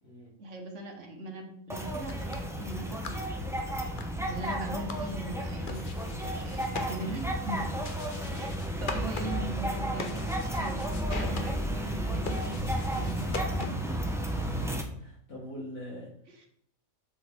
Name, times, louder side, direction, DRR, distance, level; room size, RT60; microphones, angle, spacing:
voice 1, 0.4-3.3 4.2-7.7 8.3-8.5 8.8-14.1 16.3-16.5, right 2 dB, 55° right, 2 dB, 1.4 m, -40 dB
sound 1, 1.7-14.8, equal, 5° right, 0.4 m, -33 dB
sound 2, 2.1-14.0, left 4 dB, 45° left, 0.9 m, -43 dB
voice 2, 14.3-16.1, equal, 65° left, -5 dB, 3.2 m, -43 dB
7.0 x 6.2 x 3.5 m, 0.67 s
omnidirectional pair, 1.5 m